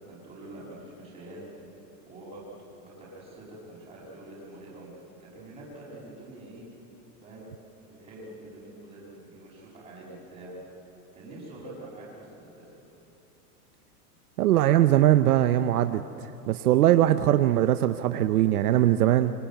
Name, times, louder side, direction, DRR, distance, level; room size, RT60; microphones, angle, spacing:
voice 1, 0.1-1.5 2.0-2.4 2.8-6.6 7.2-7.5 7.8-10.6 11.1-12.8, right 1 dB, 10° right, -5 dB, 6.9 m, -45 dB
voice 2, 14.4-16.0 16.5-19.3, right 13 dB, 70° right, 9 dB, 0.9 m, -21 dB
25.0 x 25.0 x 9.2 m, 2.9 s
supercardioid pair, 175°, 47 cm